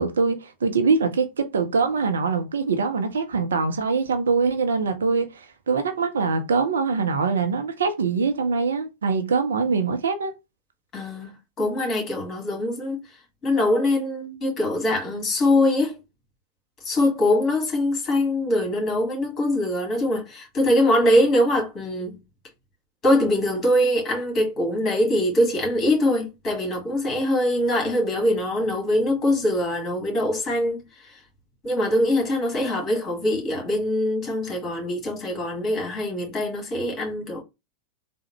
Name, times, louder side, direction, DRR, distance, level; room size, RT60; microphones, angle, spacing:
voice 1, 0.0-10.3, right 4 dB, 65° right, 0.5 m, -23 dB
voice 2, 10.9-13.0 13.4-16.0 16.8-22.2 23.0-31.2 31.6-37.4, left 1 dB, 25° left, 1.6 m, -23 dB
3.6 x 2.0 x 3.0 m
figure-of-eight pair, 90°, 0 cm